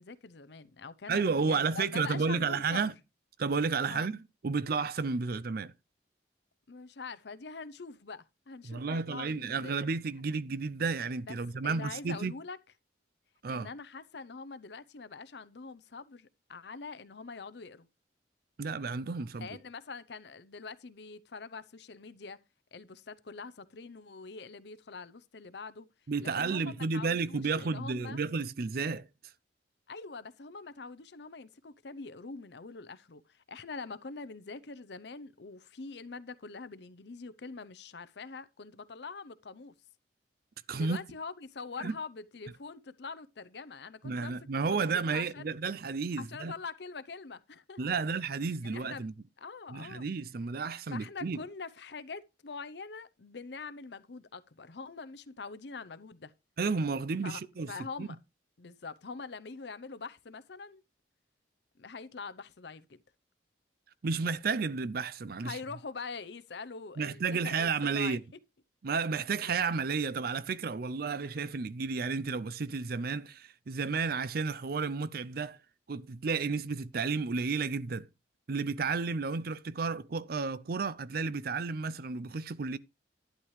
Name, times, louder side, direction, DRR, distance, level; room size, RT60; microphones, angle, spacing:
voice 1, 0.0-2.8 3.9-4.1 6.7-9.8 11.3-11.4 11.6-12.6 13.5-17.9 19.4-22.4 22.7-25.9 26.2-28.2 29.9-39.7 40.7-44.4 44.7-45.5 46.2-48.0 48.6-49.1 49.4-50.1 50.9-56.3 57.2-57.4 57.7-58.2 58.6-60.8 61.8-63.0 65.4-68.2 69.4-69.6, left 4 dB, 65° left, 0.7 m, -44 dB
voice 2, 1.1-2.9 3.4-4.2 4.4-5.7 8.6-12.3 13.4-13.7 18.6-19.5 26.1-29.1 40.7-41.0 41.8-41.9 44.0-46.5 47.8-49.1 49.7-51.4 56.6-57.7 58.0-58.1 64.0-65.6 67.0-68.2 68.8-75.6 75.9-78.1 78.5-82.8, right 4 dB, 50° right, 0.5 m, -32 dB
11.5 x 10.5 x 3.2 m
head